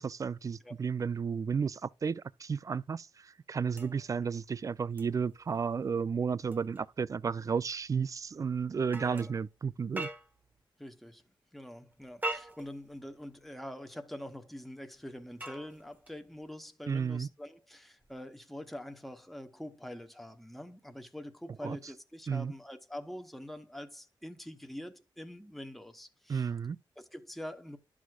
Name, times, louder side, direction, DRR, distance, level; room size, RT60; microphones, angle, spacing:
voice 1, 0.0-10.1 16.9-17.3 21.6-21.8 22.3-22.5 26.3-26.8, right 6 dB, 40° right, 0.4 m, -33 dB
sound 1, 3.7-10.6 11.9-13.5 14.9-16.5 18.0-18.2, right 1 dB, 20° right, 1.1 m, -45 dB
voice 2, 10.8-11.2 11.5-26.5 27.0-27.8, left 1 dB, ahead, 0.9 m, -45 dB
11.5 x 6.2 x 2.4 m
wide cardioid pair, 95°, 9 cm